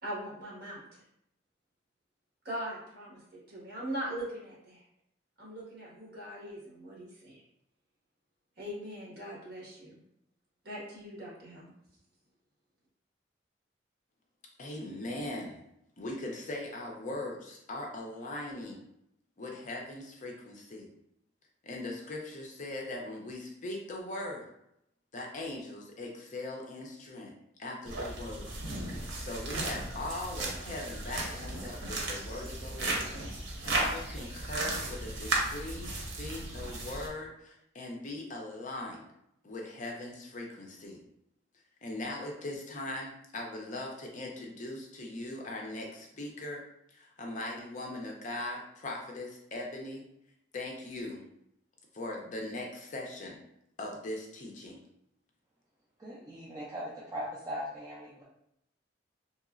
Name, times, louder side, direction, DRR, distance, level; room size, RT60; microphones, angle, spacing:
voice 1, 0.0-1.0 2.4-4.8 5.4-7.4 8.6-10.0 10.6-11.7, right 1 dB, 55° right, -6 dB, 1.5 m, -41 dB
voice 2, 14.6-15.6 16.0-18.8 19.4-20.9 21.6-24.5 25.1-28.5 29.2-33.2 33.6-39.1 39.4-41.0 41.8-46.6 46.9-50.1 50.5-51.2 51.9-53.4 53.8-54.8, left 2 dB, 40° left, 0 dB, 0.5 m, -40 dB
sound 1, 27.8-37.1, right 2 dB, 85° right, 0.8 m, -35 dB
voice 3, 56.0-58.2, equal, 20° right, -7 dB, 0.5 m, -39 dB
3.0 x 2.9 x 2.4 m, 0.78 s
head